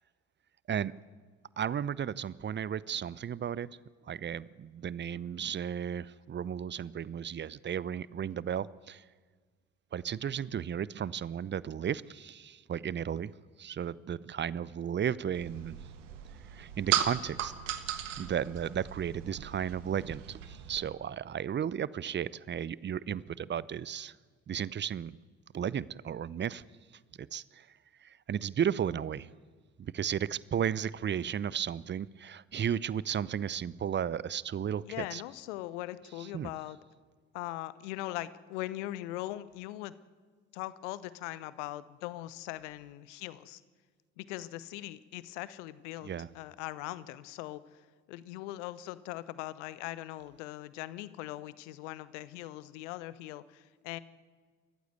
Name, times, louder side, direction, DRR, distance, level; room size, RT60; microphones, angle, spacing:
voice 1, 1.6-3.7 4.1-9.0 9.9-13.3 13.6-15.8 16.5-17.5 18.2-24.1 24.5-25.2 25.5-26.6 27.2-27.7 28.0-29.3 29.8-35.2 36.3-36.5 46.0-46.3, right 8 dB, 30° right, 21 dB, 0.7 m, -34 dB
sound 1, 15.3-20.8, right 10 dB, 80° right, 1.4 m, -36 dB
voice 2, 34.8-36.8 37.3-40.0 40.5-43.6 44.2-54.0, left 16 dB, 70° left, 17 dB, 0.9 m, -41 dB
27.5 x 14.5 x 8.0 m, 1.5 s
figure-of-eight pair, 50°, 37 cm